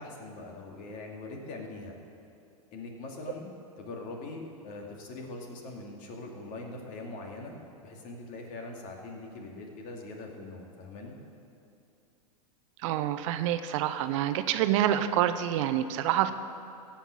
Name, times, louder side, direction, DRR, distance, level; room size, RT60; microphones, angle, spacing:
voice 1, 0.0-1.9 2.7-3.5 3.8-7.5 7.8-11.2, left 2 dB, 45° left, 1 dB, 2.5 m, -42 dB
voice 2, 12.8-16.3, right 11 dB, 55° right, 11 dB, 0.7 m, -27 dB
16.5 x 5.8 x 8.6 m, 2.7 s
hypercardioid pair, 105°, 19 cm